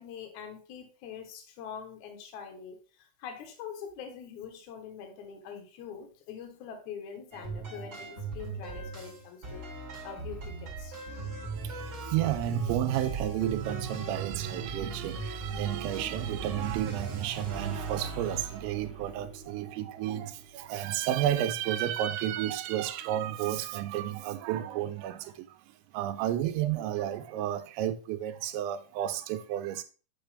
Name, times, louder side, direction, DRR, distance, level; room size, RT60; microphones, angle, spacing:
voice 1, 0.0-10.9, left 7 dB, 80° left, 1.7 m, -44 dB
sound 1, 7.3-20.7, right 4 dB, 35° right, 2.5 m, -40 dB
sound 2, 11.1-18.6, right 5 dB, 70° right, 2.4 m, -40 dB
voice 2, 12.1-25.5 25.9-29.8, right 12 dB, 90° right, 2.9 m, -32 dB
8.8 x 4.1 x 3.3 m
omnidirectional pair, 5.1 m